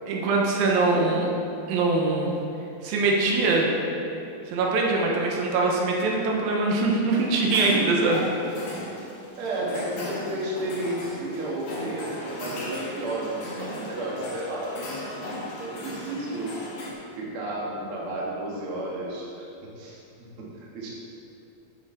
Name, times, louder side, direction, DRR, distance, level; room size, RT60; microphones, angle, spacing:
voice 1, 0.1-1.3 1.7-2.3 2.8-3.7 4.5-8.2, right 3 dB, 85° right, -1 dB, 2.8 m, -23 dB
sound 1, 7.1-16.9, left 1 dB, 60° left, 2.7 m, -37 dB
voice 2, 9.4-14.8 15.1-15.2 15.6-16.5 17.2-20.0 20.4-20.9, right 1 dB, 50° right, -4 dB, 1.9 m, -32 dB
8.9 x 7.2 x 4.4 m, 2.8 s
omnidirectional pair, 4.1 m